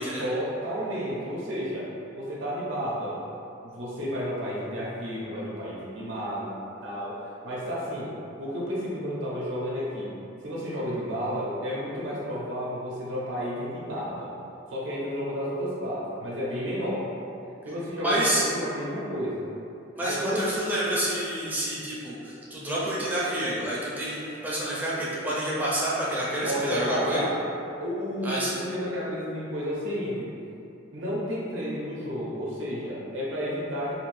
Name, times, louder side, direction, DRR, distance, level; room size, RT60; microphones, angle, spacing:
voice 1, 0.2-1.9 2.1-3.2 3.6-6.6 6.8-7.1 7.4-8.1 8.4-10.1 10.4-14.4 14.7-17.1 17.6-19.5 20.0-20.6 26.4-27.4 27.8-30.3 30.9-33.9, equal, 80° right, -6 dB, 0.6 m, -31 dB
voice 2, 18.0-18.4 20.0-27.2 28.2-28.5, right 1 dB, 10° right, -8 dB, 0.5 m, -28 dB
2.5 x 2.5 x 3.2 m, 2.7 s
head